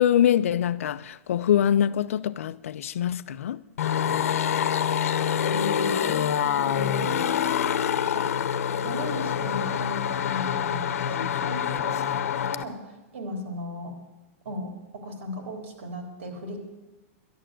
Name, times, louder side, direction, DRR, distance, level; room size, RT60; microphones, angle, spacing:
voice 1, 0.0-3.6, left 10 dB, 70° left, 0.5 m, -24 dB
sound 1, 3.8-12.6, left 8 dB, 85° left, 0.9 m, -26 dB
voice 2, 5.5-6.0 6.6-7.2 8.1-8.3 8.8-13.9 14.4-16.6, left 1 dB, 65° right, 3.7 m, -36 dB
11.5 x 11.5 x 7.8 m
supercardioid pair, 180°, 8 cm